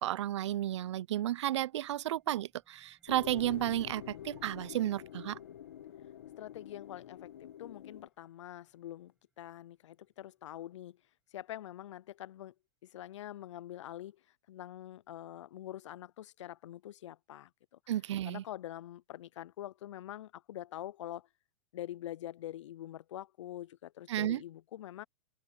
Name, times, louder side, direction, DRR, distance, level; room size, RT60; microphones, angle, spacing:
voice 1, 0.0-5.4 17.9-18.4 24.1-24.4, right 13 dB, 75° right, 0.4 m, -33 dB
sound 1, 1.7-12.5, right 3 dB, 5° right, 7.1 m, -78 dB
sound 2, 3.1-8.1, left 10 dB, 65° left, 1.8 m, -47 dB
voice 2, 6.4-11.0 11.3-12.5 12.8-14.2 14.5-17.5 18.2-21.3 21.7-25.0, left 13 dB, 80° left, 0.4 m, -45 dB
open air
supercardioid pair, 175°, 15 cm